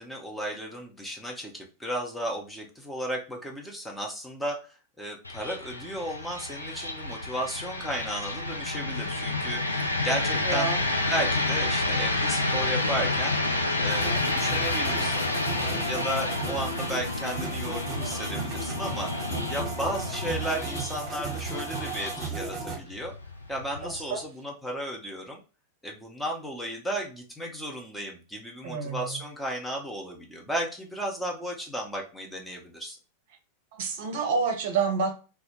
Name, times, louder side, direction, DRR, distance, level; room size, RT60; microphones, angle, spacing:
voice 1, 0.0-10.7 11.1-13.4 13.8-19.1 19.5-23.1 23.5-25.4 25.8-33.0, equal, 5° left, 0.6 m, -34 dB
sound 1, 5.2-24.2, left 2 dB, 80° left, 0.3 m, -30 dB
voice 2, 10.4-10.8 23.8-24.2 28.6-29.2 33.7-35.1, right 5 dB, 50° right, 0.6 m, -28 dB
sound 2, 13.9-22.8, right 4 dB, 25° right, 0.9 m, -35 dB
2.1 x 2.1 x 3.0 m
figure-of-eight pair, 90°, 0 cm